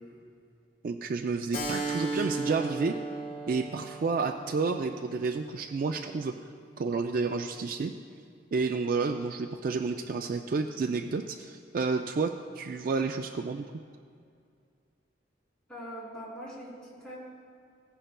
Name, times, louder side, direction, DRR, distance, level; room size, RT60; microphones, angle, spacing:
voice 1, 0.8-3.0 3.5-6.3 6.8-7.9 8.5-13.8, right 4 dB, 45° right, 7 dB, 0.3 m, -30 dB
Keyboard (musical), 1.5-6.7, right 2 dB, 40° left, 1.5 m, -37 dB
voice 2, 15.7-17.2, equal, 5° left, -7 dB, 2.7 m, -42 dB
16.0 x 10.0 x 2.2 m, 2.3 s
head